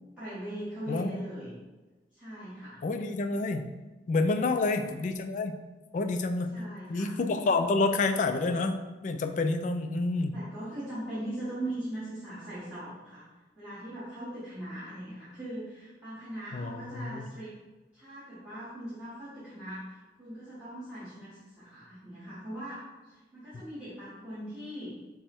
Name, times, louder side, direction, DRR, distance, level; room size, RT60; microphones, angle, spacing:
voice 1, 0.2-1.6 2.1-2.8 4.4-4.9 6.5-7.2 10.3-13.2 13.5-17.5 17.9-24.9, right 1 dB, 5° right, -14 dB, 1.4 m, -40 dB
voice 2, 0.9-1.2 2.8-3.6 4.1-5.6 5.9-6.5 6.9-10.3 16.5-17.3, left 3 dB, 45° left, 6 dB, 0.3 m, -28 dB
5.2 x 2.1 x 4.4 m, 1.2 s
head